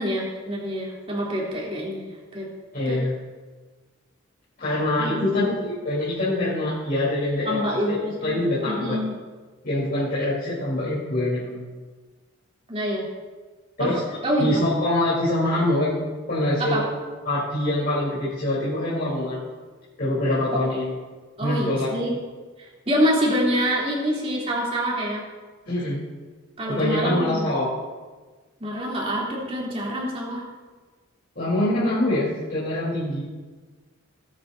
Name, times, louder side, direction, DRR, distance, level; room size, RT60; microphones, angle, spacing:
voice 1, 0.0-2.1 2.3-2.5 2.8-3.0 5.0-5.4 7.4-9.1 12.7-13.1 13.8-13.9 14.2-14.5 16.6-16.8 21.4-22.2 22.6-25.2 26.6-27.5 28.6-30.4, equal, 30° right, -5 dB, 3.3 m, -26 dB
voice 2, 2.7-3.1 4.6-8.0 8.2-9.0 9.6-11.7 13.8-14.0 14.4-16.0 16.3-16.8 17.3-19.4 20.0-20.9 21.4-21.9 25.7-26.0 26.7-27.7 31.4-33.3, left 1 dB, 50° left, -10 dB, 3.8 m, -24 dB
19.0 x 9.8 x 2.8 m, 1.4 s
head